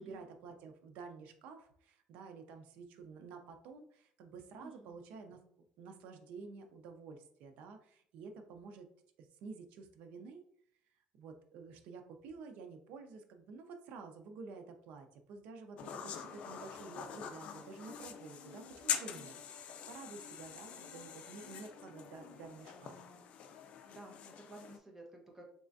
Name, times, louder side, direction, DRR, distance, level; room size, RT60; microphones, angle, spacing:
voice 1, 0.0-5.4 5.8-8.9 9.2-10.4 11.1-23.0, right 4 dB, 75° right, 6 dB, 0.6 m, -51 dB
voice 2, 4.6-5.0 23.9-25.5, right 2 dB, 15° right, 0 dB, 0.9 m, -53 dB
sound 1, 15.8-24.8, left 8 dB, 55° left, 0.4 m, -44 dB
3.6 x 3.3 x 2.6 m, 0.64 s
cardioid pair, 140°, 2 cm